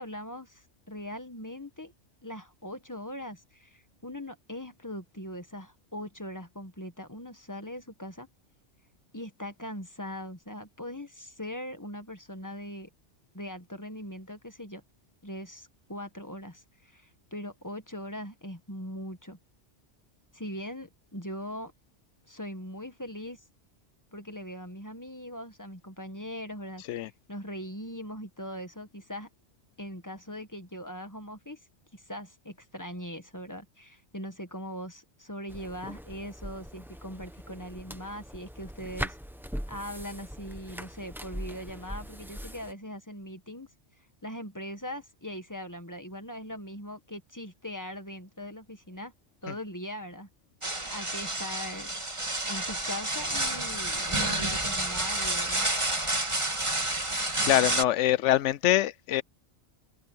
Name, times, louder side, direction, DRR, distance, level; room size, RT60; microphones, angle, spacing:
voice 1, 0.0-1.9 2.2-8.3 9.1-12.9 13.3-14.8 15.2-19.4 20.3-21.7 22.3-23.4 24.1-26.8 27.3-29.3 29.8-31.6 31.9-39.2 39.7-43.7 44.2-49.1 49.4-50.3 50.9-51.9 52.5-55.6, equal, 15° left, 1.6 m, -40 dB
sound 1, 35.5-42.7, equal, ahead, 1.2 m, -41 dB
sound 2, 50.6-57.8, right 2 dB, 25° right, 2.3 m, -30 dB
voice 2, 57.4-59.2, left 13 dB, 80° left, 0.9 m, -24 dB
omnidirectional pair, 1.2 m